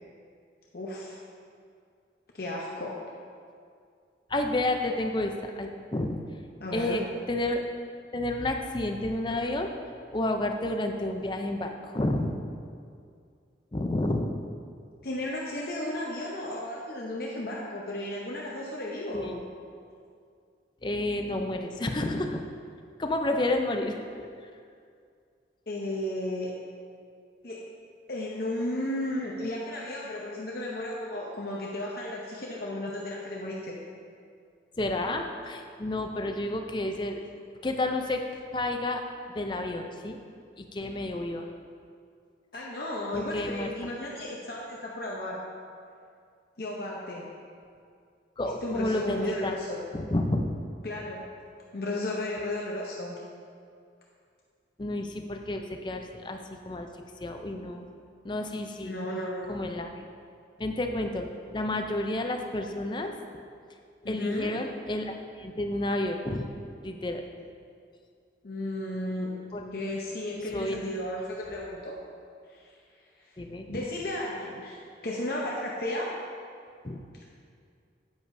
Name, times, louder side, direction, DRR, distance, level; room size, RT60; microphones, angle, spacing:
voice 1, 0.7-1.2 2.3-3.0 6.6-7.0 15.0-19.4 25.7-26.5 27.4-27.6 28.1-33.8 42.5-45.4 46.6-47.3 48.6-49.8 50.8-51.3 51.7-53.2 58.8-59.5 64.0-64.6 68.4-69.3 69.7-72.0 72.5-72.7 73.2-73.3 73.7-74.8 75.0-76.1, left 1 dB, 55° left, -3 dB, 0.8 m, -34 dB
voice 2, 4.3-6.2 6.7-7.6 8.1-9.7 10.1-12.4 13.7-14.4 19.1-19.4 20.8-22.4 23.0-24.3 34.8-37.2 37.6-38.3 38.5-39.0 39.3-40.2 40.6-41.5 43.1-43.7 48.4-49.6 49.9-50.5 54.8-56.4 56.6-56.9 57.2-57.9 58.2-58.9 59.5-60.1 60.6-61.3 61.5-63.2 64.0-66.5 66.8-67.2 69.5-69.6 70.5-70.8 73.4-73.8 76.8-77.0, left 1 dB, 25° left, 4 dB, 0.5 m, -30 dB
9.7 x 8.1 x 2.7 m, 2.3 s
head